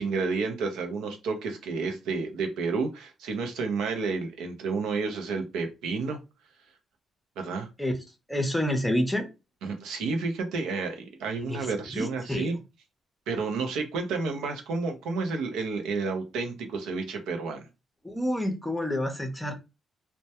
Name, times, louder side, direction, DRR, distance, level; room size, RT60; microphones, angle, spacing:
voice 1, 0.0-6.2 7.4-7.7 9.6-12.6 13.3-17.7, right 4 dB, 90° right, 0.5 m, -30 dB
voice 2, 8.3-9.3 11.4-11.7 11.9-12.5 18.0-19.5, left 1 dB, 5° left, 0.6 m, -28 dB
2.1 x 2.1 x 2.7 m
cardioid pair, 90°, 0 cm